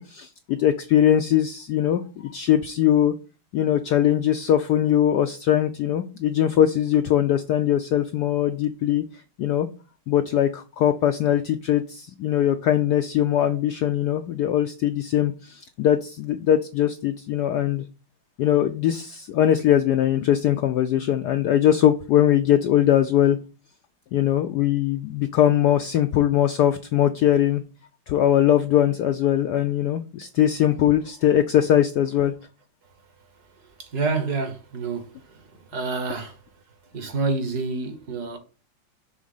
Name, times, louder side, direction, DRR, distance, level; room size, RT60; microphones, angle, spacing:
voice 1, 0.0-3.1 3.5-9.0 9.4-9.7 10.1-17.8 18.4-23.4 24.1-27.6 28.1-32.3, left 11 dB, 80° left, 0.9 m, -21 dB
voice 2, 33.8-35.1 35.7-36.4 36.9-38.4, right 3 dB, 55° right, 1.6 m, -27 dB
6.3 x 3.5 x 5.5 m
omnidirectional pair, 2.3 m